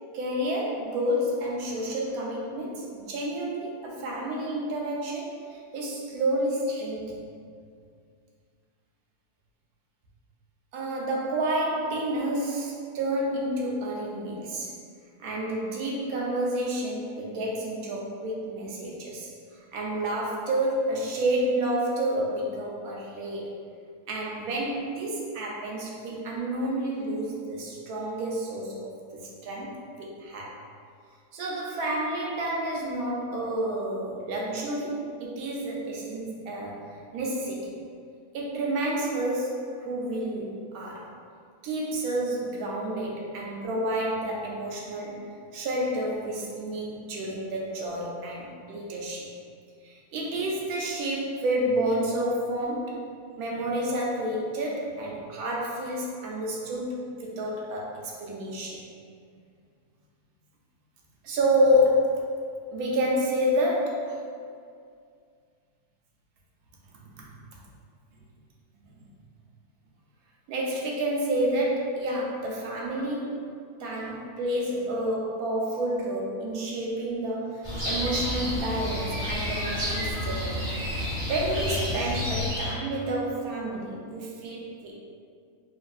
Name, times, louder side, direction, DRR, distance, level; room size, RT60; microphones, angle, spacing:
voice 1, 0.1-7.2 10.7-14.7 15.2-19.3 19.7-23.5 24.1-30.6 31.3-36.8 37.1-37.7 38.3-41.1 41.6-45.2 45.5-49.3 49.8-53.0 53.4-58.8 61.2-62.3 62.7-64.2 67.1-67.2 70.5-73.4 73.8-80.6 81.3-84.9, right 1 dB, 80° right, -3 dB, 1.1 m, -29 dB
sound 1, 77.6-82.7, equal, 25° right, 0.7 m, -30 dB
3.1 x 2.5 x 2.3 m, 2.2 s
omnidirectional pair, 1.6 m